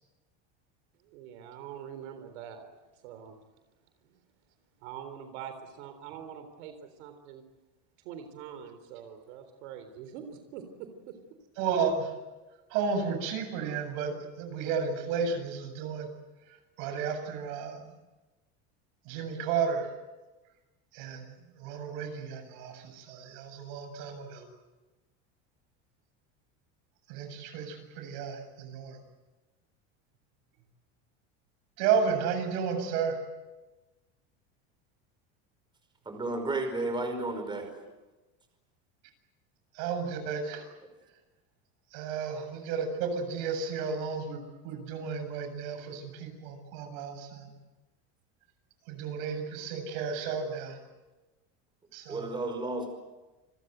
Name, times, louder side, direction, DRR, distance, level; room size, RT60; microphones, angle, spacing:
voice 1, 1.0-2.7 2.9-3.4 4.0-4.2 4.8-7.4 8.0-11.1, right 8 dB, 85° right, 8 dB, 4.0 m, -44 dB
voice 2, 11.6-12.1 12.7-16.1 16.8-17.9 19.1-19.9 20.9-21.2 21.5-24.4 27.1-29.0 31.8-33.2 39.7-40.7 41.9-47.5 48.9-50.8 51.9-52.3, right 6 dB, 65° right, 6 dB, 7.6 m, -32 dB
voice 3, 36.1-37.7 52.1-52.9, right 2 dB, 15° right, 6 dB, 5.2 m, -32 dB
29.0 x 23.0 x 8.1 m, 1.1 s
cardioid pair, 155°, 34 cm